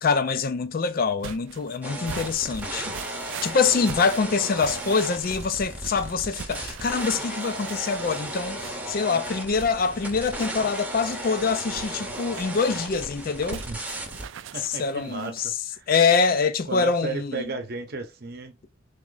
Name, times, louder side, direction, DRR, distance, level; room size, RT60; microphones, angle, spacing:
voice 1, 0.0-13.6 14.6-15.5 15.9-17.4, left 5 dB, 45° left, 0.4 m, -25 dB
sound 1, 1.2-15.5, right 8 dB, 70° right, 0.3 m, -42 dB
sound 2, 1.8-14.3, right 1 dB, 10° right, 0.8 m, -35 dB
voice 2, 14.5-15.8 16.7-18.7, right 3 dB, 50° right, 0.8 m, -34 dB
3.6 x 3.1 x 3.9 m
head